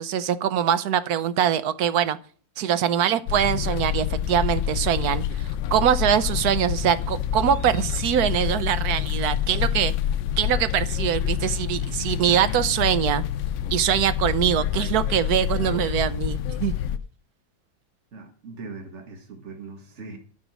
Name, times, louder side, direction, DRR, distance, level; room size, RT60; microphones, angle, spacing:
voice 1, 0.0-2.2 2.6-9.9 10.4-13.2 13.7-16.7, right 9 dB, 70° right, 15 dB, 1.1 m, -23 dB
sound 1, 3.3-17.0, left 10 dB, 80° left, 1.3 m, -27 dB
voice 2, 18.1-20.2, right 4 dB, 40° right, 4 dB, 2.0 m, -40 dB
11.0 x 6.1 x 6.2 m, 0.43 s
omnidirectional pair, 1.9 m